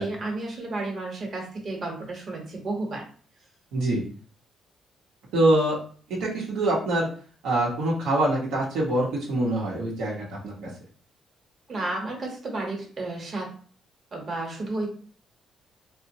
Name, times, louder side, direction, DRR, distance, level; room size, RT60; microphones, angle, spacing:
voice 1, 0.0-3.0 11.7-13.5 14.1-14.9, right 2 dB, 50° right, 0 dB, 0.9 m, -32 dB
voice 2, 3.7-4.0 5.3-5.8 6.2-7.1 7.4-10.7, right 1 dB, 90° right, -4 dB, 0.7 m, -24 dB
2.9 x 2.1 x 2.6 m, 0.44 s
cardioid pair, 90°, 0 cm